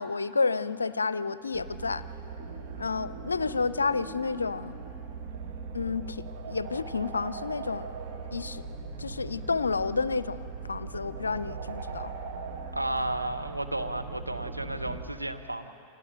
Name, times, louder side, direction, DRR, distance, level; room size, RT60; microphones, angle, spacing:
voice 1, 0.0-2.0 2.8-4.8 5.7-7.9 8.3-8.6 9.0-12.1, left 4 dB, 75° left, 17 dB, 0.5 m, -30 dB
sound 1, 1.5-15.0, right 4 dB, 45° right, 1.7 m, -40 dB
voice 2, 12.7-15.7, right 1 dB, 85° right, 6 dB, 0.9 m, -33 dB
29.5 x 25.5 x 4.0 m, 2.9 s
figure-of-eight pair, 90°, 0 cm